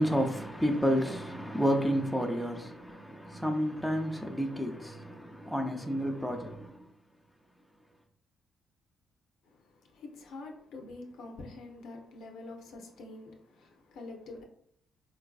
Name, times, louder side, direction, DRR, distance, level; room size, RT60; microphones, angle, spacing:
voice 1, 0.0-6.8, equal, ahead, 0.5 m, -30 dB
voice 2, 9.4-14.4, left 2 dB, 80° left, 0.7 m, -46 dB
3.9 x 2.5 x 2.3 m
cardioid pair, 90°, 0 cm